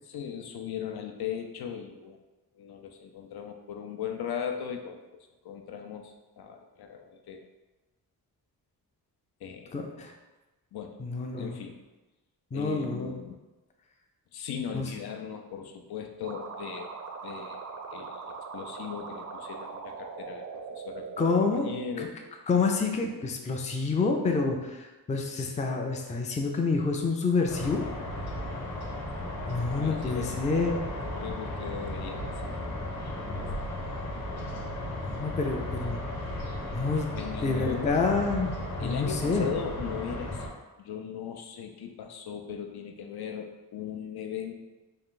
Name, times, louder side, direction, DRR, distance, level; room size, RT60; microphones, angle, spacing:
voice 1, 0.1-2.2 2.6-5.0 5.4-7.4 9.4-9.7 10.7-11.0 11.4-11.8 12.5-13.4 14.3-17.0 17.2-22.2 29.7-30.3 31.0-33.5 37.2-37.9 38.8-40.5 40.8-44.5, left 8 dB, 75° left, 4 dB, 0.5 m, -38 dB
voice 2, 9.7-10.1 11.0-11.6 12.5-13.1 14.7-14.9 21.2-21.7 22.0-22.1 22.5-27.8 29.5-30.8 35.0-36.0 36.7-39.5, left 4 dB, 20° left, 2 dB, 0.3 m, -28 dB
sound 1, 16.2-21.5, right 5 dB, 45° right, 0.4 m, -40 dB
sound 2, 27.5-40.5, left 1 dB, 45° left, 1.0 m, -35 dB
3.8 x 2.4 x 3.7 m, 1.1 s
wide cardioid pair, 135°, 38 cm